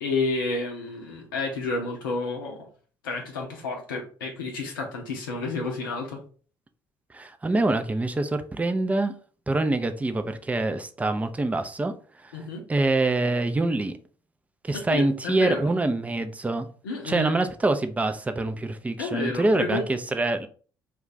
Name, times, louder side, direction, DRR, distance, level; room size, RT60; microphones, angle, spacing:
voice 1, 0.0-2.7 3.0-6.2 12.3-12.6 14.7-15.7 16.8-17.3 19.0-19.8, left 3 dB, 80° left, 0.5 m, -30 dB
voice 2, 7.1-9.1 9.5-14.0 14.6-16.7 17.0-20.5, right 2 dB, 15° right, 0.4 m, -25 dB
2.3 x 2.3 x 3.8 m
figure-of-eight pair, 50°, 11 cm